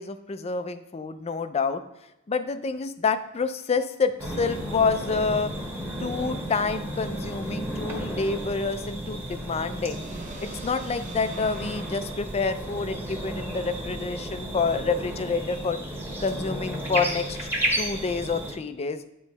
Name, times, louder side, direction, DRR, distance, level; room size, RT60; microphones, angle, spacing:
voice 1, 0.0-1.8 2.3-5.5 6.0-10.0 10.4-15.8 16.2-17.5 17.8-19.0, left 4 dB, 30° left, 11 dB, 0.4 m, -28 dB
sound 1, 4.2-18.5, right 1 dB, 10° right, 1.3 m, -33 dB
sound 2, 5.4-9.5, left 2 dB, 85° left, 1.1 m, -48 dB
sound 3, 9.9-13.8, right 3 dB, 40° right, 0.6 m, -47 dB
9.0 x 3.1 x 5.3 m, 0.89 s
head